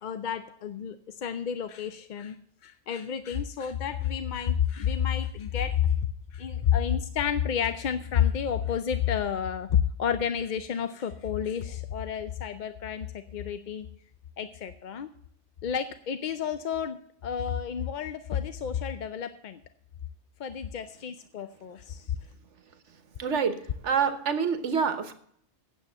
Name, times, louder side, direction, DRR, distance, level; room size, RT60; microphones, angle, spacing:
voice 1, 0.0-2.4 2.6-5.9 6.3-13.9 14.4-15.1 15.6-17.0 17.2-19.6 20.4-22.2, left 8 dB, 55° left, 10 dB, 0.6 m, -30 dB
voice 2, 23.2-23.6 23.8-25.1, right 6 dB, 80° right, 9 dB, 1.4 m, -26 dB
9.2 x 7.4 x 7.3 m, 0.65 s
omnidirectional pair, 1.2 m